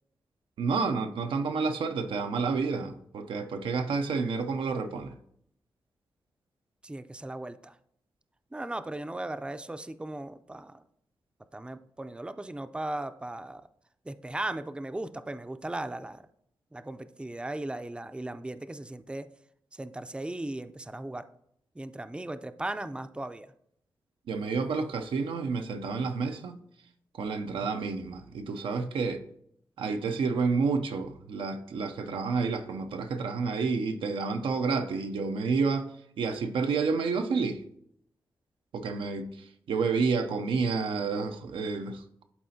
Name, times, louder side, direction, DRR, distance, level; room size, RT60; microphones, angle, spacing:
voice 1, 0.6-5.1 24.3-26.6 27.1-29.2 29.8-37.6 38.7-42.0, right 4 dB, 85° right, 0.5 m, -30 dB
voice 2, 6.8-7.7 8.5-10.8 11.5-13.6 14.1-16.2 16.7-19.3 19.7-21.2 21.8-23.5, right 1 dB, 10° right, 0.5 m, -37 dB
11.0 x 4.2 x 2.8 m
cardioid pair, 45°, 9 cm